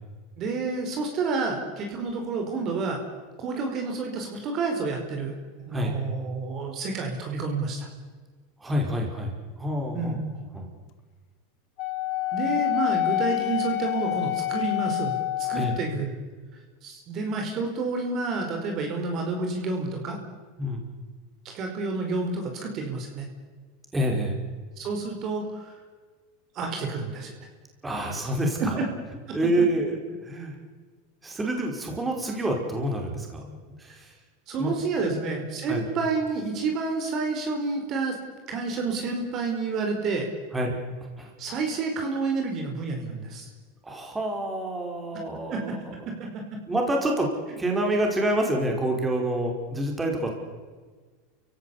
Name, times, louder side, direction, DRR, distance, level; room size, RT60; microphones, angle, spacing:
voice 1, 0.4-3.0 3.4-5.3 5.7-7.9 9.9-10.2 12.3-16.1 16.8-20.2 21.4-23.2 24.8-25.8 26.5-27.3 34.5-38.2 38.5-40.3 41.4-43.5 45.5-45.6 45.9-46.0 46.3-46.6, right 3 dB, 45° right, 3 dB, 4.9 m, -29 dB
voice 2, 8.6-10.2 10.5-10.7 15.5-15.7 20.6-20.8 23.9-24.4 27.8-28.8 29.3-30.0 30.2-30.6 31.2-34.1 34.6-34.7 35.1-35.2 35.7-35.9 40.5-40.8 41.2-41.3 43.8-45.9 46.7-50.3, right 1 dB, 15° right, 1 dB, 5.3 m, -27 dB
Wind instrument woodwind instrument, 11.8-15.9, left 17 dB, 55° left, 1.6 m, -27 dB
29.0 x 16.5 x 8.5 m, 1.5 s
hypercardioid pair, 110°, 0 cm